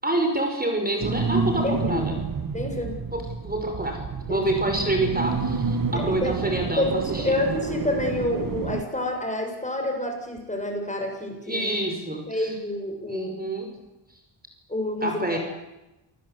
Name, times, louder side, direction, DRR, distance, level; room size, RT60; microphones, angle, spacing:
voice 1, 0.0-2.2 3.1-4.0 4.3-7.2 11.5-12.5 13.1-13.7 15.0-15.4, right 1 dB, 20° right, 4 dB, 5.6 m, -27 dB
sound 1, 1.0-8.8, right 4 dB, 45° right, 1.7 m, -29 dB
voice 2, 1.6-2.0 2.5-3.0 4.3-4.4 5.9-6.3 6.8-11.7 12.3-13.3 14.7-15.4, left 1 dB, 15° left, 3 dB, 7.1 m, -28 dB
27.5 x 20.5 x 8.2 m, 0.97 s
cardioid pair, 85°, 47 cm